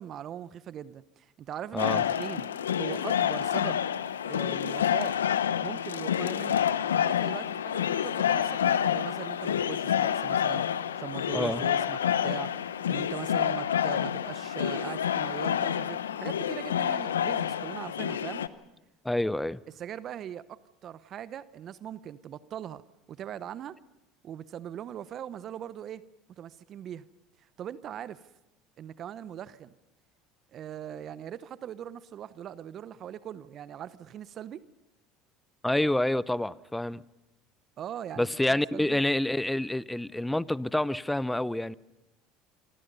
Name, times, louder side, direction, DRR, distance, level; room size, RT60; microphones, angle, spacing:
voice 1, 0.0-2.5 2.8-3.8 4.2-5.2 5.6-6.6 6.9-10.7 11.0-18.4 19.8-22.8 23.1-23.8 24.2-26.0 26.4-27.0 27.6-28.2 28.8-29.7 30.5-34.6 37.8-39.0, right 10 dB, 50° right, 0.9 m, -40 dB
voice 2, 1.7-2.0 11.3-11.6 19.0-19.6 35.6-37.0 38.2-41.8, left 1 dB, 5° left, 0.8 m, -28 dB
sound 1, 1.8-18.5, left 9 dB, 90° left, 0.8 m, -28 dB
26.0 x 25.5 x 5.5 m
hypercardioid pair, 75°, 0 cm